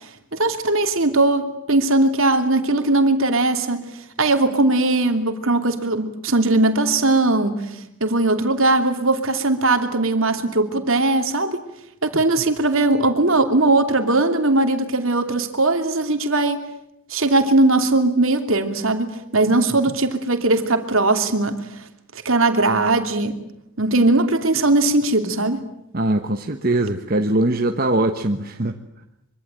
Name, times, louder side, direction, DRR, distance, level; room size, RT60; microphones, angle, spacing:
voice 1, 0.3-3.9 4.2-11.6 12.0-16.7 17.1-21.6 22.2-23.3 23.8-25.6, right 2 dB, 70° right, 6 dB, 2.9 m, -19 dB
voice 2, 25.9-28.8, right 1 dB, 40° right, 5 dB, 1.2 m, -21 dB
24.5 x 24.5 x 9.0 m, 0.80 s
head